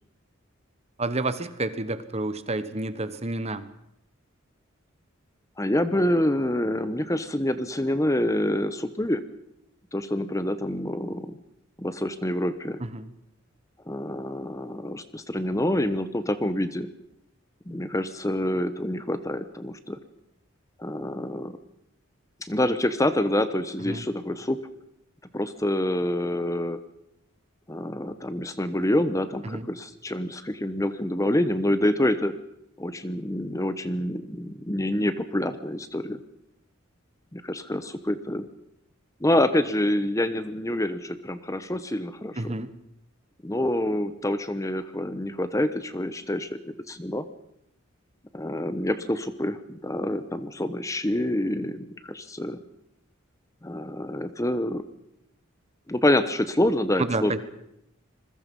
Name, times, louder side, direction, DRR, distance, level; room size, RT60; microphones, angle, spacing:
voice 1, 1.0-3.7 12.8-13.1 23.8-24.0 29.4-29.7 42.4-42.7 57.0-57.4, right 2 dB, 30° right, 12 dB, 1.2 m, -29 dB
voice 2, 5.6-9.2 9.9-11.4 11.8-12.8 13.9-16.9 17.7-20.0 20.8-21.6 22.4-24.6 25.3-26.8 27.7-32.3 32.8-36.2 37.3-38.5 39.2-42.6 43.4-47.2 48.3-52.6 53.6-54.8 55.9-57.4, left 1 dB, 15° left, 12 dB, 1.0 m, -27 dB
27.0 x 21.5 x 5.4 m, 0.78 s
head